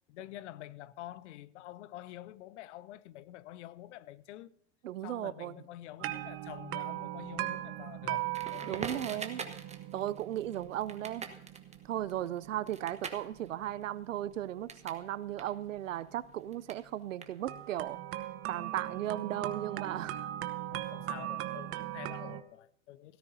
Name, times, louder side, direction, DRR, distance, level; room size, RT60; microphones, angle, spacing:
voice 1, 0.1-4.5 5.0-8.3 8.5-9.2 20.7-23.2, left 14 dB, 70° left, 0.7 m, -47 dB
voice 2, 4.8-5.6 8.6-9.4 9.9-11.3 11.8-18.0 18.5-20.3, right 12 dB, 85° right, 0.7 m, -36 dB
sound 1, 6.0-16.0 17.5-22.4, right 14 dB, 35° right, 0.9 m, -40 dB
Crackle, 8.3-15.0 15.3-17.8, right 5 dB, 15° right, 1.3 m, -45 dB
17.0 x 13.5 x 2.7 m
hypercardioid pair, 100°, 37 cm